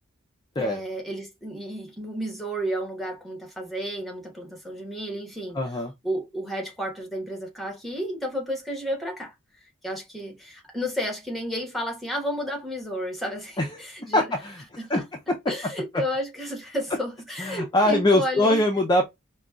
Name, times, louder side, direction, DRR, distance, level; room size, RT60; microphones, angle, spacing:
voice 1, 0.6-5.6 6.0-9.3 9.8-14.3 14.8-15.0 15.5-18.6, equal, ahead, 1.1 m, -32 dB
voice 2, 5.5-5.9 13.6-13.8 14.1-15.0 17.4-19.0, left 1 dB, 20° left, 0.4 m, -22 dB
4.9 x 2.2 x 2.3 m
head